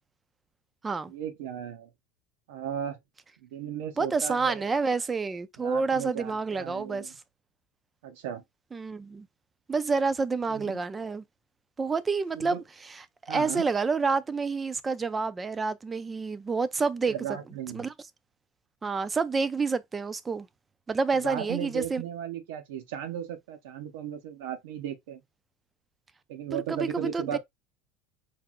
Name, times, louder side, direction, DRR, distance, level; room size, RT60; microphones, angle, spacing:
voice 1, 1.1-1.9 2.5-3.0 3.4-4.6 5.6-7.1 8.0-8.4 10.5-10.8 12.4-12.6 13.3-13.6 17.1-17.9 21.2-25.2 26.3-27.4, right 9 dB, 85° right, 0.8 m, -36 dB
voice 2, 4.0-7.1 8.7-9.3 9.7-11.2 11.8-12.6 12.9-17.1 17.7-17.9 18.8-20.5 20.9-22.0 26.5-27.4, right 4 dB, 20° right, 0.4 m, -28 dB
4.6 x 2.0 x 3.6 m
supercardioid pair, 120°, 0 cm